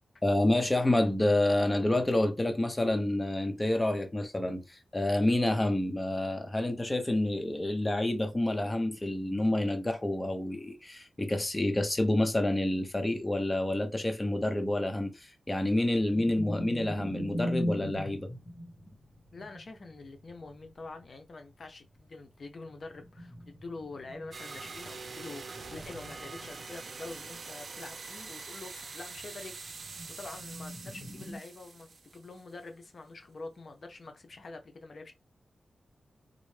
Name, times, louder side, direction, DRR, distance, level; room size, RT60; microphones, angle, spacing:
voice 1, 0.2-18.3, left 1 dB, 20° left, 0.7 m, -28 dB
sound 1, 16.1-21.4 22.7-26.8 27.1-27.3 27.6-31.4, equal, 35° left, 1.3 m, -40 dB
voice 2, 19.3-29.7 30.2-35.1, left 3 dB, 60° left, 0.7 m, -46 dB
sound 2, 24.3-32.6, right 4 dB, 60° right, 0.5 m, -44 dB
3.9 x 2.1 x 3.2 m
cardioid pair, 70°, 0 cm